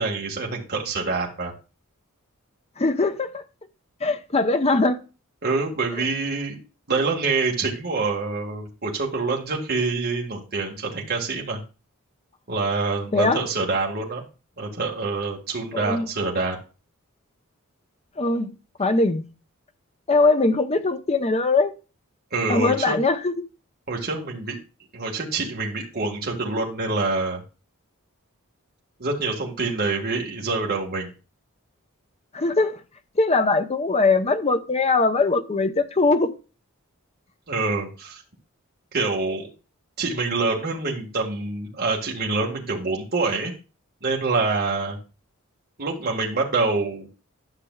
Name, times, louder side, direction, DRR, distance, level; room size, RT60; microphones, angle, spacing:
voice 1, 0.0-1.5 5.4-6.6 6.9-11.6 12.5-14.2 14.6-16.6 22.3-23.0 23.9-24.6 24.9-27.4 29.0-31.1 37.5-38.2 38.9-39.5 40.0-43.5 44.0-45.0 45.8-47.1, right 3 dB, 50° right, 1.7 m, -26 dB
voice 2, 2.8-3.4 4.0-5.0 13.1-13.4 15.7-16.1 18.2-18.5 18.8-19.2 20.1-21.7 22.5-23.5 32.3-32.8 33.2-36.3, left 3 dB, 30° left, 0.7 m, -21 dB
11.5 x 6.8 x 2.3 m
head